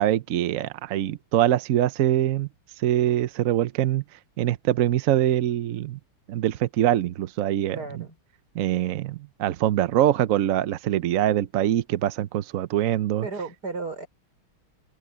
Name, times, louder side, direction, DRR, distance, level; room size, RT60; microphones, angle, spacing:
voice 1, 0.0-2.5 2.8-4.0 4.4-6.0 6.3-8.1 8.5-13.3, right 12 dB, 85° right, 0.7 m, -24 dB
voice 2, 7.7-8.1 13.2-14.1, right 4 dB, 50° right, 4.7 m, -34 dB
omnidirectional pair, 2.3 m